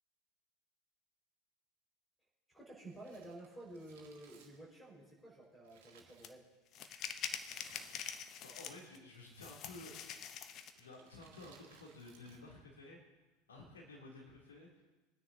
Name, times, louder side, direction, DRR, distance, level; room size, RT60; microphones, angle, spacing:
voice 1, 2.5-6.5, right 1 dB, 5° left, -2 dB, 4.9 m, -52 dB
Crumpling crinkling, 2.8-6.8 7.5-8.5 8.8-8.9 9.7-10.0 10.7-12.6 12.9-13.0, right 6 dB, 60° right, 1.8 m, -65 dB
sound 1, 6.2-6.3 6.7-9.0 9.4-10.8, left 8 dB, 40° left, 0.7 m, -45 dB
voice 2, 8.3-9.9 10.8-13.0 13.5-14.8, left 2 dB, 70° left, -2 dB, 2.8 m, -53 dB
23.5 x 9.8 x 2.7 m, 1.2 s
figure-of-eight pair, 80°, 0 cm